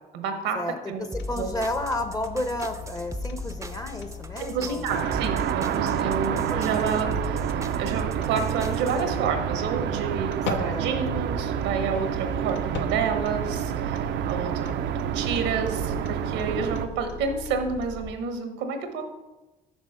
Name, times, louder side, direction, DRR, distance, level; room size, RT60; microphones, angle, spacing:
voice 1, 0.1-1.1 1.4-1.5 4.4-19.0, right 5 dB, 85° right, 6 dB, 1.0 m, -30 dB
sound 1, 1.1-18.1, left 6 dB, 65° left, 0.7 m, -39 dB
voice 2, 1.1-4.8 5.7-7.0 10.6-11.3, left 1 dB, 20° left, 7 dB, 0.8 m, -32 dB
sound 2, 1.1-9.0, right 1 dB, 15° right, 0.5 m, -38 dB
sound 3, 4.9-16.9, right 10 dB, 65° right, 0.4 m, -28 dB
6.1 x 4.4 x 5.5 m, 1.1 s
supercardioid pair, 60°, 20 cm